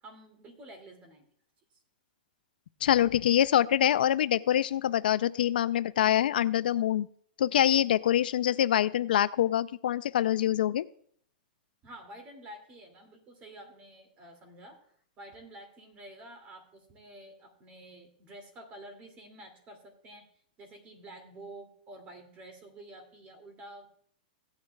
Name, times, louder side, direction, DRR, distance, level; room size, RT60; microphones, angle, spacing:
voice 1, 0.0-1.3 11.8-14.8 15.2-20.3 20.6-23.9, right 1 dB, 25° right, 4 dB, 2.3 m, -49 dB
voice 2, 2.8-7.1 7.4-10.9, left 11 dB, 75° left, 16 dB, 0.4 m, -25 dB
16.5 x 9.6 x 2.3 m, 0.62 s
hypercardioid pair, 155°, 5 cm